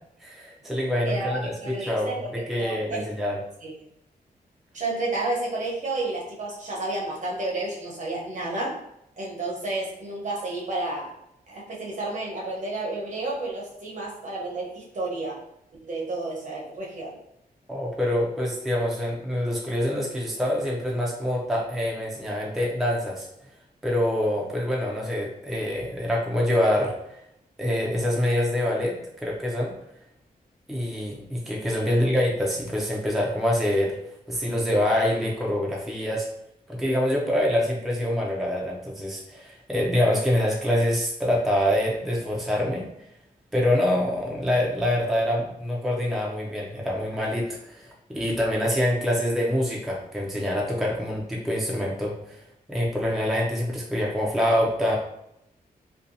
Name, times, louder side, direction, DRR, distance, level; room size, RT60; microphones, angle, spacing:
voice 1, 0.2-3.4 17.7-23.3 23.8-27.2 27.6-29.7 30.7-34.0 34.3-36.3 36.7-42.9 43.5-52.4 52.7-55.0, left 1 dB, ahead, -2 dB, 0.5 m, -25 dB
voice 2, 1.0-3.1 3.6-3.7 4.7-8.8 9.2-11.1 11.5-15.4 15.8-17.2 31.8-32.1, right 2 dB, 55° right, -3 dB, 0.8 m, -31 dB
2.6 x 2.2 x 2.6 m, 0.80 s
wide cardioid pair, 105°, 16 cm